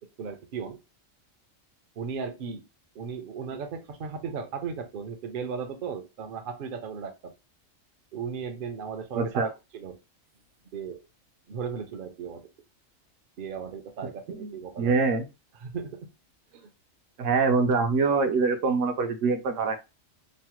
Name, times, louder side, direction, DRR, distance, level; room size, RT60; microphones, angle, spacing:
voice 1, 0.2-0.8 2.0-2.6 2.9-7.3 8.1-10.0 10.7-11.0 11.5-12.5 13.4-14.9 15.6-16.1 16.5-16.7, right 6 dB, 55° right, 6 dB, 0.6 m, -36 dB
voice 2, 9.2-9.5 14.3-15.3 17.2-19.8, right 4 dB, 75° right, 6 dB, 0.9 m, -24 dB
3.1 x 2.1 x 2.9 m, 0.26 s
omnidirectional pair, 1.4 m